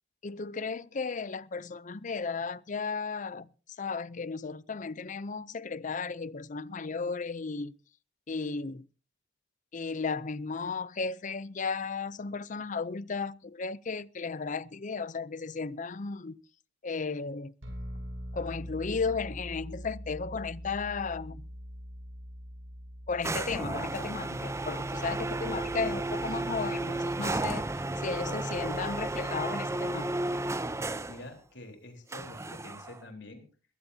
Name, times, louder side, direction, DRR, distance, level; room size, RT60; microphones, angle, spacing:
voice 1, 0.2-3.5 3.8-7.8 8.3-8.9 9.7-16.4 16.8-17.5 18.3-21.5 23.1-27.6 28.0-30.2, left 4 dB, 40° left, 0.6 m, -34 dB
sound 1, 17.6-31.0, equal, 85° right, 6.3 m, -45 dB
sound 2, 23.2-31.3 32.1-33.0, right 2 dB, 15° right, 0.7 m, -33 dB
voice 2, 31.1-33.5, left 2 dB, 65° left, 4.0 m, -47 dB
22.0 x 15.0 x 2.8 m
head